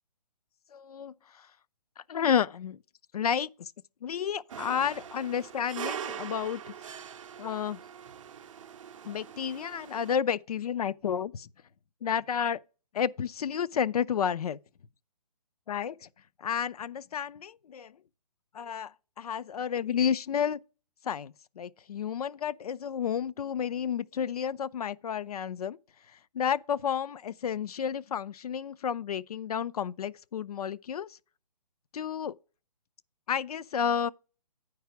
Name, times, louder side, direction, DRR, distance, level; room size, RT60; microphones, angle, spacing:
voice 1, 0.7-1.5 2.0-2.8 3.1-3.7 4.0-6.7 7.4-7.8 9.0-11.5 12.0-12.6 12.9-14.6 15.7-16.1 16.4-18.0 18.5-20.6 21.0-25.8 26.1-31.2 31.9-32.4 33.3-34.1, left 8 dB, 65° left, 0.4 m, -31 dB
sound 1, 4.5-10.2, right 9 dB, 50° right, 0.5 m, -42 dB
9.3 x 4.7 x 5.8 m
hypercardioid pair, 150°, 21 cm